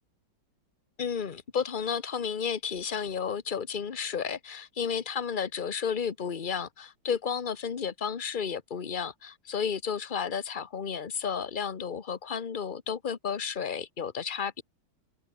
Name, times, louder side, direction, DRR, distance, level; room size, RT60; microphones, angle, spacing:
voice 1, 1.0-14.6, left 7 dB, 35° left, 0.9 m, -32 dB
omnidirectional pair, 2.2 m